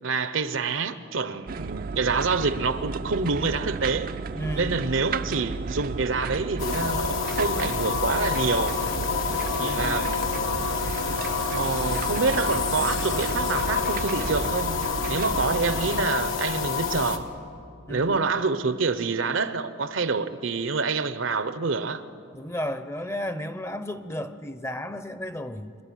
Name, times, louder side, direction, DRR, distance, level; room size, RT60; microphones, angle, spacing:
voice 1, 0.0-4.1 4.6-8.7 9.6-10.5 11.4-14.8 15.1-17.3 17.9-22.0, right 4 dB, 80° right, 0.9 m, -27 dB
sound 1, 1.5-16.0, right 4 dB, 45° right, 0.4 m, -33 dB
voice 2, 4.3-4.8 9.6-10.1 17.9-18.2 22.3-25.8, equal, 15° left, 0.6 m, -33 dB
sound 2, 6.6-17.2, left 6 dB, 80° left, 1.4 m, -28 dB
25.5 x 11.0 x 10.0 m
head